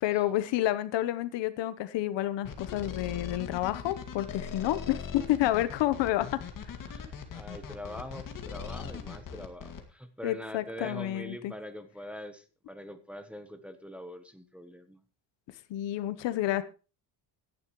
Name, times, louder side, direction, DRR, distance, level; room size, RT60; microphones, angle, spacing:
voice 1, 0.0-6.4 10.2-11.5 15.7-16.6, left 14 dB, 70° left, 13 dB, 1.1 m, -29 dB
sound 1, 2.4-9.8, left 6 dB, 45° left, 2.3 m, -40 dB
voice 2, 6.9-15.0, equal, 5° right, 8 dB, 1.0 m, -43 dB
16.5 x 11.5 x 3.1 m, 0.33 s
cardioid pair, 145°, 46 cm